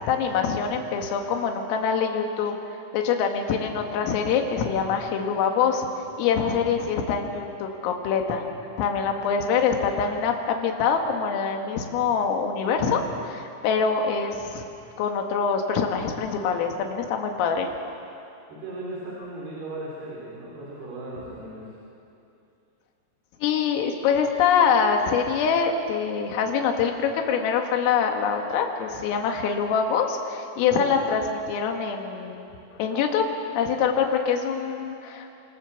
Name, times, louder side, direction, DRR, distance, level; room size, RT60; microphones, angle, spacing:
voice 1, 0.1-2.5 2.9-5.9 6.2-8.5 8.8-14.7 15.0-17.7 23.4-32.5 32.8-33.3 33.5-35.3, left 6 dB, 80° left, 3 dB, 4.5 m, -24 dB
voice 2, 18.5-21.7, right 2 dB, 50° right, -5 dB, 6.1 m, -37 dB
27.0 x 26.0 x 7.3 m, 2.7 s
omnidirectional pair, 6.0 m